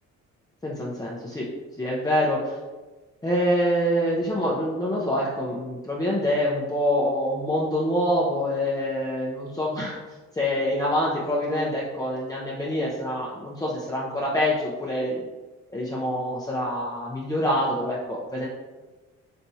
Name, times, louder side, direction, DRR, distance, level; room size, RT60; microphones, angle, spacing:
voice 1, 0.6-1.5 1.8-2.6 3.2-10.0 10.3-15.2 15.7-18.5, equal, 10° left, -5 dB, 0.6 m, -26 dB
4.2 x 3.4 x 2.7 m, 1.2 s
cardioid pair, 90°, 30 cm